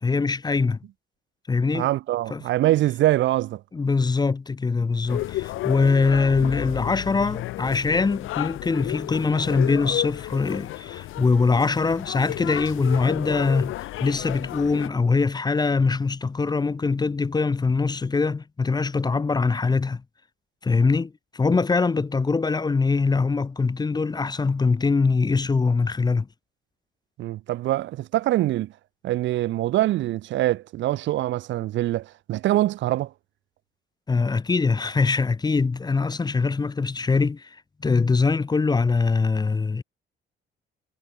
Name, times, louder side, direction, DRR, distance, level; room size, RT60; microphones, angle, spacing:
voice 1, 0.0-0.8 1.5-1.9 2.3-2.4 3.7-13.7 14.0-20.0 20.6-26.3 34.1-39.8, left 4 dB, 20° left, 0.6 m, -23 dB
voice 2, 1.7-3.6 27.2-28.7 29.0-33.1, right 15 dB, 70° right, 0.4 m, -24 dB
sound 1, 5.1-14.9, left 16 dB, 85° left, 1.0 m, -32 dB
cardioid pair, 90°, 20 cm